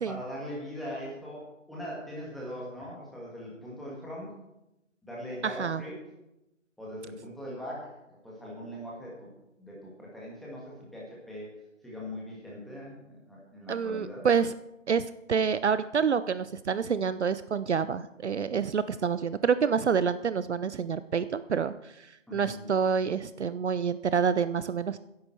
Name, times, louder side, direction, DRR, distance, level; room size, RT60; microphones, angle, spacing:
voice 1, 0.1-4.3 5.0-5.9 6.8-9.3 9.6-11.5 11.8-14.3 22.3-22.7, equal, ahead, -5 dB, 1.6 m, -41 dB
voice 2, 5.4-5.8 13.7-14.5 14.9-25.0, right 6 dB, 60° right, 14 dB, 0.6 m, -28 dB
15.0 x 10.5 x 4.5 m, 0.91 s
figure-of-eight pair, 155°, 38 cm